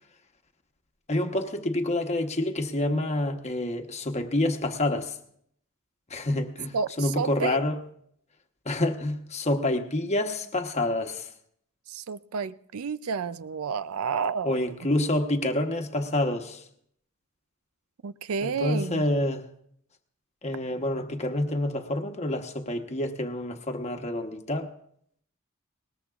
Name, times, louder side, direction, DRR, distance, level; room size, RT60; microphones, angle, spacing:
voice 1, 1.1-5.1 6.1-7.8 8.6-11.3 14.4-16.6 18.4-19.4 20.4-24.7, left 1 dB, 30° left, 1.1 m, -28 dB
voice 2, 6.7-7.6 11.9-14.6 18.0-19.0, right 5 dB, 75° right, 0.5 m, -30 dB
21.0 x 19.0 x 2.5 m
head